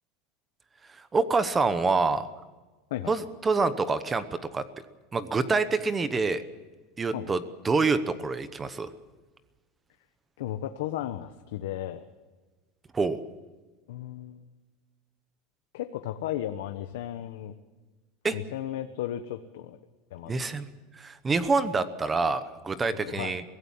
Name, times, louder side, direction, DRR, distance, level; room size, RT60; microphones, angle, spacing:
voice 1, 1.0-2.3 3.1-4.6 5.1-6.4 7.0-8.9 12.9-13.2 18.2-18.4 20.3-23.4, right 4 dB, 15° right, 12 dB, 0.9 m, -26 dB
voice 2, 10.4-12.0 13.9-14.4 15.7-17.5 18.3-19.8 20.1-20.6 22.9-23.4, left 12 dB, 85° left, 7 dB, 1.2 m, -35 dB
23.5 x 16.5 x 7.3 m, 1.2 s
supercardioid pair, 165°, 0 cm